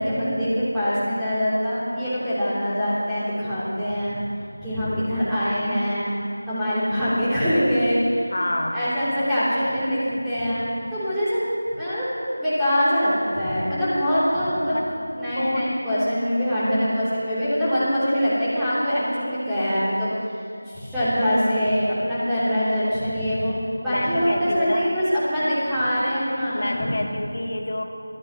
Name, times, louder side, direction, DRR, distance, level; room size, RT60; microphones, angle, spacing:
voice 1, 0.0-4.1 4.6-6.1 6.5-8.3 8.7-11.4 11.7-12.1 12.4-14.8 15.2-20.1 20.7-23.6 23.8-26.9, equal, ahead, -18 dB, 3.4 m, -23 dB
voice 2, 8.3-8.9 14.7-14.9 15.3-15.8 23.9-24.9 26.5-27.8, left 1 dB, 55° left, 2 dB, 1.7 m, -27 dB
22.5 x 14.5 x 3.1 m, 2.5 s
figure-of-eight pair, 170°, 0 cm